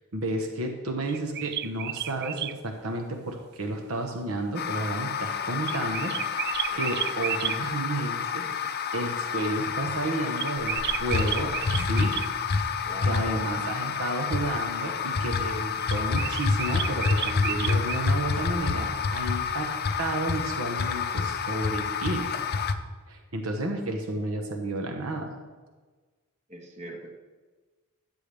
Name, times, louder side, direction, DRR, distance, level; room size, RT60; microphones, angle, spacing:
voice 1, 0.1-6.3 6.7-8.6 8.9-12.7 13.0-22.3 23.1-25.3, right 2 dB, 75° right, 4 dB, 1.1 m, -32 dB
sound 1, 1.1-2.6 5.6-7.6 10.4-12.3 15.9-18.0, right 11 dB, 50° right, 0.3 m, -32 dB
sound 2, 4.6-22.7, left 5 dB, 45° left, 0.6 m, -28 dB
voice 2, 12.8-13.6 26.5-27.1, right 1 dB, 35° right, 1 dB, 1.5 m, -42 dB
13.5 x 8.3 x 3.5 m, 1.3 s
head